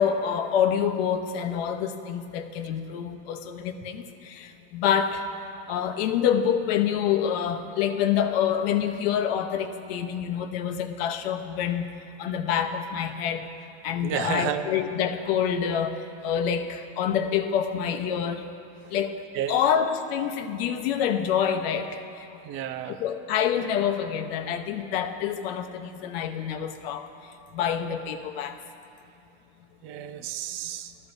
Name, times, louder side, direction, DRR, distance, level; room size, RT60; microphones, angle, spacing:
voice 1, 0.0-5.2 5.7-11.9 12.2-13.5 13.8-18.5 18.9-19.2 19.5-22.0 22.9-27.1 27.5-28.6, left 8 dB, 55° left, 6 dB, 0.9 m, -27 dB
voice 2, 14.0-14.7 19.4-19.5 22.5-23.0 29.8-30.9, right 10 dB, 35° right, 10 dB, 0.5 m, -31 dB
19.5 x 14.0 x 2.6 m, 2.5 s
supercardioid pair, 165°, 35 cm